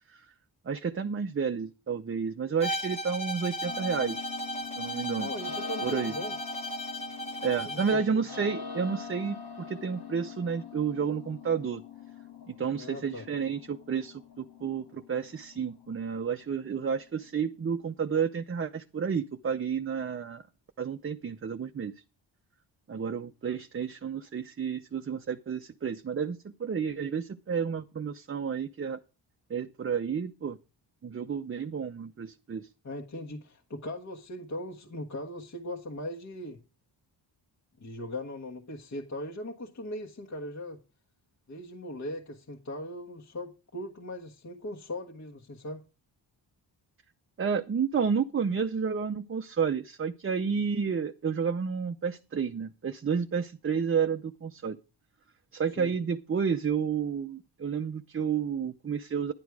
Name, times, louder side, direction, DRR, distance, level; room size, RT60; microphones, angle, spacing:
voice 1, 0.7-4.3 4.8-5.3 5.8-6.1 7.4-11.8 12.5-20.4 20.8-21.9 22.9-29.0 29.5-30.6 31.0-32.7 47.4-54.8 55.5-59.3, right 6 dB, 30° right, 0.6 m, -31 dB
Bowed string instrument, 2.6-8.1, equal, 15° left, 1.4 m, -36 dB
sound 1, 3.6-17.5, left 6 dB, 60° left, 1.9 m, -44 dB
voice 2, 5.2-6.4 7.6-8.2 12.8-13.3 32.8-36.6 37.8-40.8 41.5-45.8 55.8-55.9, left 1 dB, 40° left, 1.4 m, -39 dB
10.5 x 10.0 x 4.8 m
wide cardioid pair, 115°, 46 cm